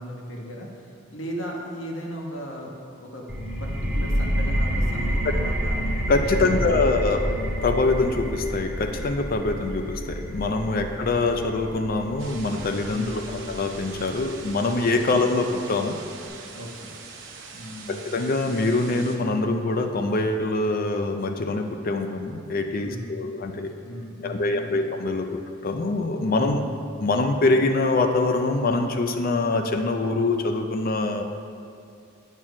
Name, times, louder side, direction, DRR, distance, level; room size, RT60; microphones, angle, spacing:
voice 1, 0.0-2.7 3.0-3.3 3.6-5.8 6.2-6.9 7.2-7.4 12.9-13.4 15.0-15.3 16.5-17.0 17.5-18.1 22.7-23.2 23.8-24.9 26.3-26.8, equal, 75° left, -1 dB, 1.3 m, -36 dB
sound 1, 3.3-14.7, equal, 5° right, 1.4 m, -29 dB
voice 2, 6.1-7.3 7.6-16.0 17.9-23.7 24.2-26.6 27.0-31.2, left 3 dB, 45° left, 6 dB, 0.4 m, -24 dB
sound 2, 12.2-19.2, right 4 dB, 65° right, 0.9 m, -42 dB
8.7 x 4.5 x 6.0 m, 2.4 s
head